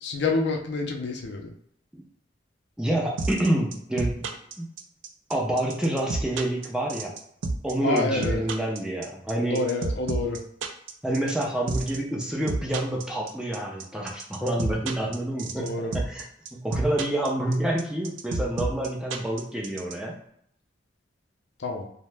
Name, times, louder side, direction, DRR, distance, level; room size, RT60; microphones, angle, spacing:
voice 1, 0.0-1.5 7.8-8.4 9.5-10.4 15.6-15.9 21.6-21.9, left 3 dB, 60° left, 2 dB, 0.5 m, -27 dB
voice 2, 2.8-4.2 4.6-4.7 5.3-7.1 7.6-9.6 11.0-16.3 16.5-20.1, right 1 dB, 5° right, -2 dB, 0.4 m, -28 dB
sound 1, 3.2-19.9, right 3 dB, 85° right, 0.4 m, -30 dB
2.7 x 2.1 x 3.3 m, 0.68 s
head